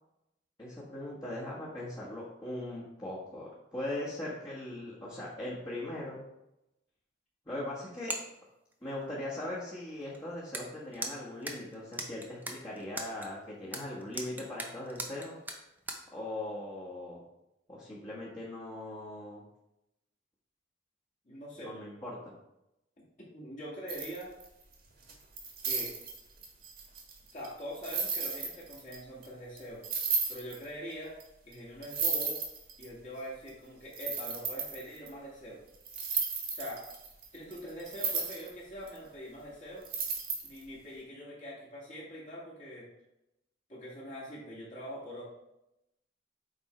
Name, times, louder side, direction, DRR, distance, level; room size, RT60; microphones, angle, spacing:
voice 1, 0.6-6.2 7.4-8.1 8.8-15.4 16.1-17.2 17.7-19.4 21.6-22.1, left 1 dB, 20° left, -8 dB, 1.5 m, -40 dB
sound 1, 8.0-8.3 8.7-8.8 10.1-10.2 10.5-10.7 10.9-13.3 13.7-16.0, right 2 dB, 10° right, 0.7 m, -38 dB
voice 2, 21.2-21.7 23.3-24.3 25.6-25.9 27.3-29.8 30.3-31.1 31.4-32.4 32.8-35.6 36.5-36.8 37.3-39.8 40.4-42.9 43.7-45.2, equal, 40° left, -6 dB, 2.2 m, -43 dB
sound 2, 23.9-24.6 25.1-29.0 29.2-29.3 29.6-29.7 29.8-30.6 31.2-31.3 31.5-31.6 31.8-32.9 33.5-33.6 33.9-35.1 35.9-38.5 38.9-39.0 39.9-40.6, right 5 dB, 50° right, 1.5 m, -34 dB
7.9 x 3.6 x 4.5 m, 0.88 s
head